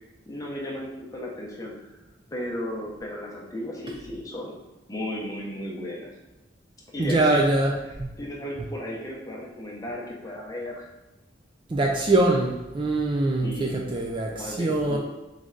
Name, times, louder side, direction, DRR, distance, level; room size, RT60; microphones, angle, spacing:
voice 1, 0.3-1.9 2.3-4.6 4.9-6.2 6.9-7.6 8.2-10.9 13.4-13.8 14.3-15.0, left 1 dB, 20° left, -3 dB, 0.8 m, -35 dB
voice 2, 7.0-7.7 8.0-8.1 11.7-15.0, right 2 dB, 25° right, 0 dB, 0.4 m, -23 dB
3.7 x 3.2 x 3.7 m, 1.0 s
head